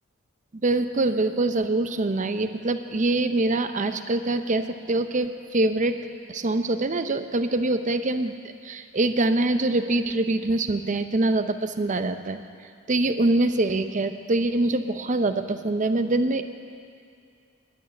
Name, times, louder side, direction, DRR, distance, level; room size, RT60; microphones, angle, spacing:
voice 1, 0.5-12.4 12.9-16.4, right 2 dB, 40° right, 9 dB, 0.7 m, -24 dB
11.5 x 9.7 x 9.7 m, 2.4 s
head